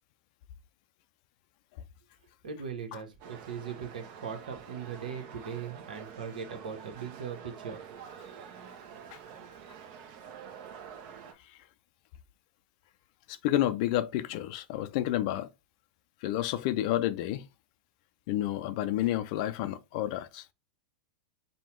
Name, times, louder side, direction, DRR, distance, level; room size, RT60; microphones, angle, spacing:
voice 1, 2.4-8.0, right 6 dB, 80° right, 1.1 m, -39 dB
sound 1, 3.2-11.3, right 7 dB, 50° right, 0.8 m, -47 dB
voice 2, 13.3-15.5 16.2-17.5 18.3-20.4, left 13 dB, 55° left, 0.4 m, -30 dB
5.4 x 2.3 x 3.0 m
hypercardioid pair, 110°, 5 cm